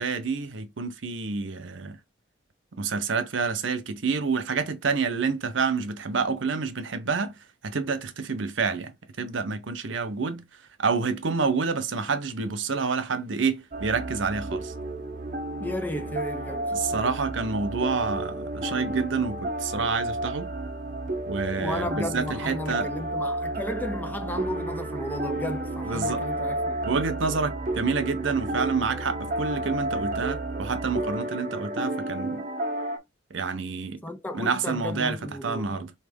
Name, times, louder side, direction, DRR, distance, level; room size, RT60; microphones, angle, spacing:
voice 1, 0.0-2.0 2.7-7.3 7.6-8.9 9.2-10.4 10.8-14.7 16.7-20.5 21.3-22.9 25.8-26.3 26.8-32.4 33.3-34.0 34.3-35.9, right 4 dB, 80° right, 0.8 m, -28 dB
sound 1, 13.7-33.0, right 1 dB, 45° right, 0.9 m, -32 dB
voice 2, 15.6-17.2 21.6-26.8 34.0-35.8, left 1 dB, 10° left, 0.5 m, -34 dB
4.2 x 3.2 x 3.5 m
head